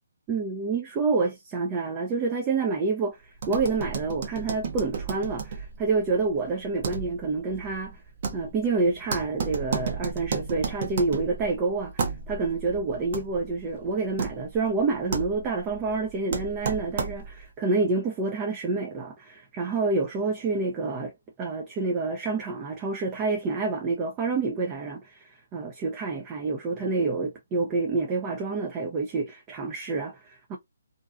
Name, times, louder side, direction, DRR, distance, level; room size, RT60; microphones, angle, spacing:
voice 1, 0.3-8.0 8.3-21.1 21.4-30.6, right 3 dB, 20° right, 0.5 m, -28 dB
sound 1, 3.4-17.5, right 5 dB, 45° right, 0.8 m, -34 dB
2.6 x 2.2 x 2.4 m
hypercardioid pair, 150°, 0 cm